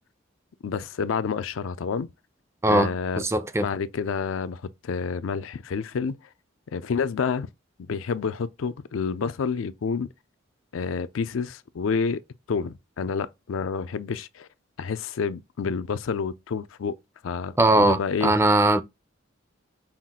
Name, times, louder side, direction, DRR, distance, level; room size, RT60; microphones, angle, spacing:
voice 1, 0.6-2.1 2.7-3.2 3.6-6.2 6.7-7.5 7.9-10.1 10.7-12.2 12.5-14.5 14.8-17.0 17.2-18.3, left 5 dB, 80° left, 0.4 m, -29 dB
voice 2, 3.2-3.7 17.6-18.8, right 1 dB, 15° right, 0.4 m, -20 dB
5.7 x 2.4 x 3.6 m
head